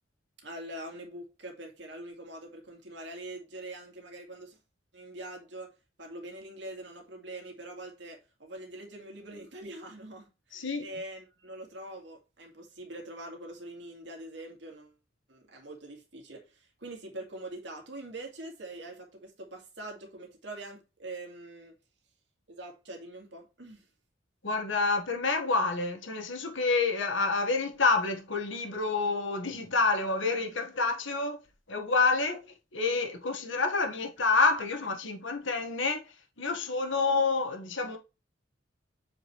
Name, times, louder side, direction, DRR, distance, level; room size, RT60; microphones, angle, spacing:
voice 1, 0.4-4.6 4.9-5.7 6.0-14.9 15.3-21.7 22.5-23.9, right 1 dB, 65° right, 2.3 m, -44 dB
voice 2, 10.5-10.8 24.4-31.4 31.7-32.4 32.7-36.0 36.4-38.0, left 3 dB, 80° left, 1.7 m, -28 dB
7.4 x 5.3 x 3.3 m
head